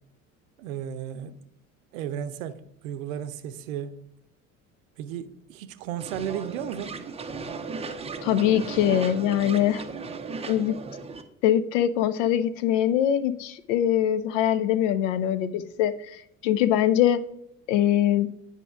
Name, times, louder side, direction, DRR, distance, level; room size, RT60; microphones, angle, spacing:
voice 1, 0.6-1.4 1.9-4.0 5.0-7.0, right 9 dB, 65° right, 0.7 m, -34 dB
sound 1, 6.0-11.2, right 4 dB, 15° right, 0.5 m, -36 dB
voice 2, 8.2-9.8 10.5-10.8 11.4-17.2 17.7-18.3, left 11 dB, 60° left, 0.6 m, -23 dB
9.7 x 5.1 x 2.4 m
figure-of-eight pair, 65°, 42 cm